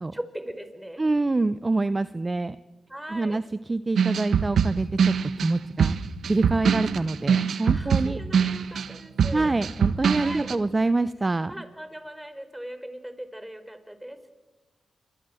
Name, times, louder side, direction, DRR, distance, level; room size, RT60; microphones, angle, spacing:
voice 1, 0.1-1.0 2.9-3.4 7.7-9.5 10.2-10.5 11.5-14.2, right 1 dB, 10° right, 10 dB, 4.3 m, -39 dB
voice 2, 1.0-2.6 3.1-6.0 6.2-8.2 9.3-11.5, right 2 dB, 30° right, 15 dB, 0.7 m, -26 dB
sound 1, 4.0-10.5, right 7 dB, 75° right, 1.3 m, -23 dB
27.0 x 23.5 x 7.8 m, 1.2 s
cardioid pair, 55°, 0 cm